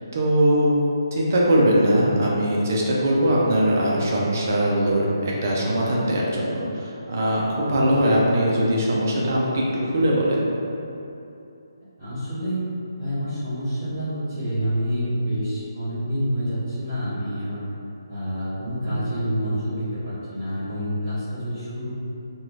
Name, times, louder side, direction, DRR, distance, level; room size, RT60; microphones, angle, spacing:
voice 1, 0.1-0.8 1.1-10.5 18.6-19.0, equal, 40° right, -4 dB, 0.4 m, -21 dB
voice 2, 12.0-12.7 13.0-17.6 18.1-21.9, equal, 15° right, -15 dB, 1.0 m, -27 dB
3.1 x 2.2 x 2.5 m, 2.8 s
hypercardioid pair, 175°, 2 cm